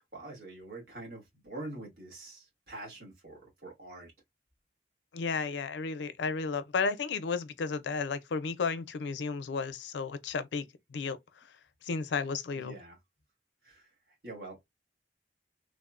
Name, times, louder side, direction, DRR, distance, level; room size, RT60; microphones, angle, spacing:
voice 1, 0.0-4.1 12.5-13.0 13.6-14.7, right 2 dB, 65° right, 1.4 m, -45 dB
voice 2, 5.1-10.6 10.9-11.2 11.8-12.7, left 4 dB, 90° left, 0.5 m, -33 dB
3.4 x 2.1 x 2.4 m
head